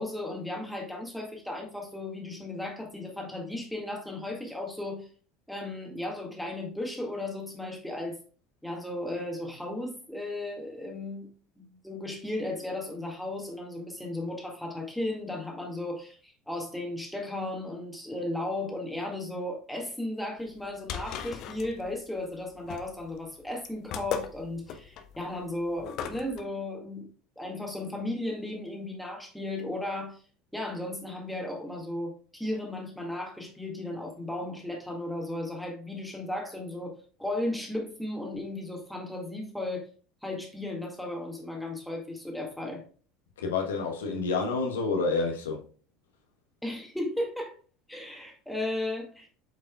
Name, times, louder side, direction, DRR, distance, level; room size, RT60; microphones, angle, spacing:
voice 1, 0.0-5.1 5.5-8.2 8.6-11.3 11.8-27.1 27.4-30.2 30.5-36.9 37.2-39.9 40.2-42.8 46.6-47.5 47.9-49.3, left 1 dB, ahead, 1.9 m, -35 dB
sound 1, 20.5-26.4, left 8 dB, 45° left, 0.7 m, -38 dB
voice 2, 43.4-45.6, left 4 dB, 70° left, 1.1 m, -28 dB
7.8 x 5.5 x 2.3 m
figure-of-eight pair, 70°, 0 cm